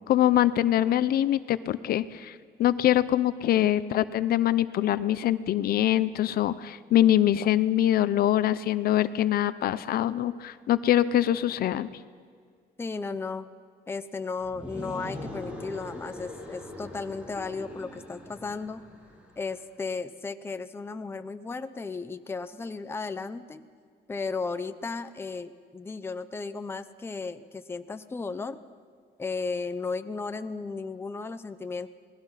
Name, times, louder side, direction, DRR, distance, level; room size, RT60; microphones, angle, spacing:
voice 1, 0.1-11.9, left 12 dB, 60° left, 15 dB, 0.7 m, -24 dB
voice 2, 12.8-13.5 13.9-18.8 19.4-23.6 24.1-28.6 29.2-31.9, left 4 dB, 15° left, 10 dB, 0.7 m, -35 dB
sound 1, 14.4-19.4, left 1 dB, 5° right, 3.3 m, -41 dB
28.5 x 19.5 x 5.7 m, 2.1 s
cardioid pair, 170°, 18 cm